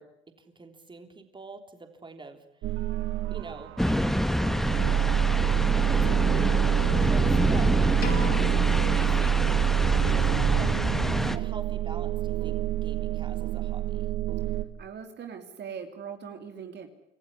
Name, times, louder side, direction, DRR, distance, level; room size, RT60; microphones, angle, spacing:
voice 1, 0.0-2.4 3.3-4.2 5.7-8.1 8.8-9.4 9.9-10.7 11.0-14.1, right 3 dB, 20° right, 6 dB, 3.4 m, -44 dB
sound 1, 2.6-14.6, right 10 dB, 75° right, 1.7 m, -26 dB
sound 2, 3.8-11.4, equal, ahead, 1.4 m, -27 dB
Piano, 8.0-10.3, left 4 dB, 50° left, 7.2 m, -37 dB
voice 2, 14.8-16.9, right 7 dB, 55° right, 5 dB, 2.8 m, -40 dB
26.5 x 15.0 x 9.8 m, 0.88 s
cardioid pair, 90°, 21 cm